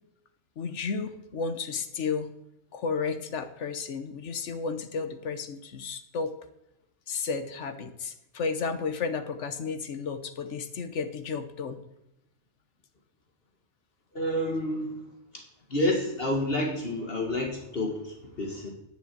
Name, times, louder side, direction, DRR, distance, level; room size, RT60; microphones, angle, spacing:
voice 1, 0.6-2.3 2.7-6.3 7.1-11.8, left 5 dB, 90° left, 9 dB, 1.3 m, -33 dB
voice 2, 14.1-15.0 15.7-18.7, left 1 dB, 55° left, 1 dB, 1.9 m, -29 dB
9.7 x 8.0 x 7.5 m, 0.90 s
omnidirectional pair, 1.2 m